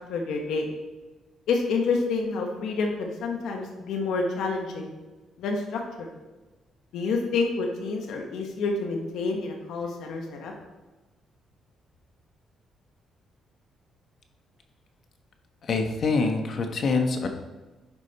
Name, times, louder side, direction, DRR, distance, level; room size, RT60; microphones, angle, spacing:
voice 1, 0.1-0.7 1.5-4.9 5.4-6.1 6.9-10.5, left 4 dB, 80° left, 2 dB, 1.3 m, -28 dB
voice 2, 15.6-17.3, left 4 dB, 55° left, 4 dB, 1.2 m, -25 dB
10.5 x 5.0 x 4.2 m, 1.2 s
cardioid pair, 90°, 0 cm